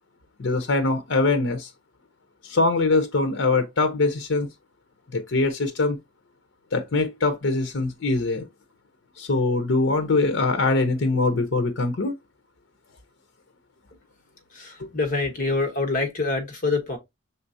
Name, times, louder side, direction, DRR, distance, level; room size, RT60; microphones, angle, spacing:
voice 1, 0.4-1.7 2.4-4.5 5.1-6.0 6.7-8.5 9.2-12.1 14.8-14.9, left 3 dB, 65° left, 0.7 m, -23 dB
voice 2, 14.5-17.0, left 3 dB, 40° left, 1.1 m, -26 dB
5.7 x 3.3 x 2.6 m
head